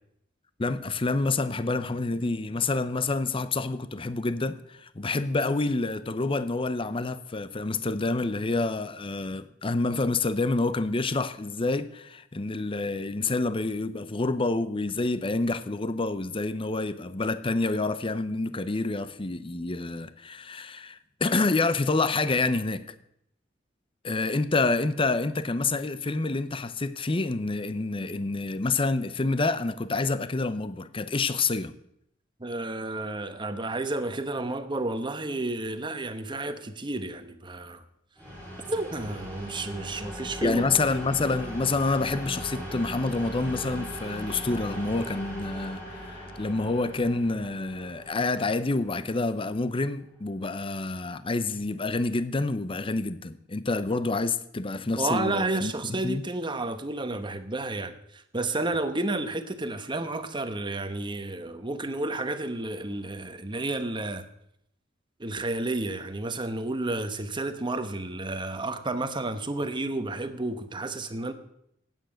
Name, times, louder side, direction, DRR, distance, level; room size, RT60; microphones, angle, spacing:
voice 1, 0.6-22.8 24.0-31.7 40.4-56.2, left 3 dB, 30° left, 0.7 m, -28 dB
voice 2, 32.4-37.8 38.7-40.6 55.0-64.2 65.2-71.3, right 2 dB, 25° right, 1.1 m, -31 dB
sound 1, 38.2-49.8, equal, 10° left, 6.1 m, -39 dB
15.5 x 9.2 x 6.4 m
head